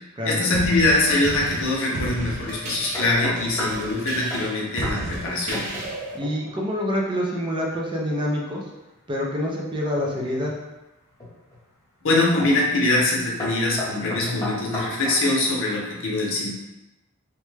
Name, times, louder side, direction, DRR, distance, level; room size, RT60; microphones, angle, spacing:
voice 1, 0.2-5.7 12.0-16.5, left 2 dB, 60° left, -3 dB, 0.7 m, -23 dB
sound 1, 0.5-6.2, right 2 dB, 80° right, 0.5 m, -33 dB
sound 2, 2.9-3.9 4.3-4.5 4.8-5.0 5.2-5.9 6.2-6.6 9.9-10.6 11.2-11.6 12.4-12.6 12.9-13.1 13.4-15.2, left 1 dB, 15° left, 1.0 m, -33 dB
voice 2, 6.1-8.6 9.1-10.5 14.1-14.4, equal, 20° right, -2 dB, 0.4 m, -26 dB
3.0 x 2.2 x 3.2 m, 1.0 s
head